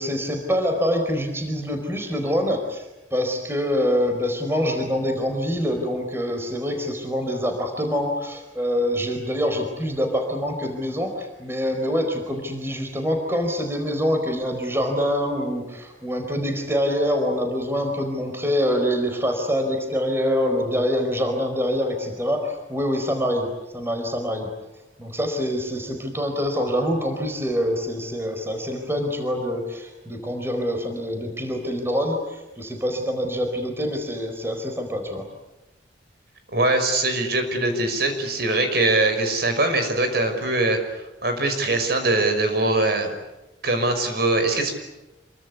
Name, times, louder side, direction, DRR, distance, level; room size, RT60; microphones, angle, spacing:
voice 1, 0.0-24.5 25.0-35.3, equal, 10° right, 4 dB, 4.5 m, -25 dB
voice 2, 36.5-43.1 43.6-44.7, right 2 dB, 55° right, 6 dB, 5.9 m, -22 dB
28.5 x 24.0 x 8.4 m, 1.0 s
head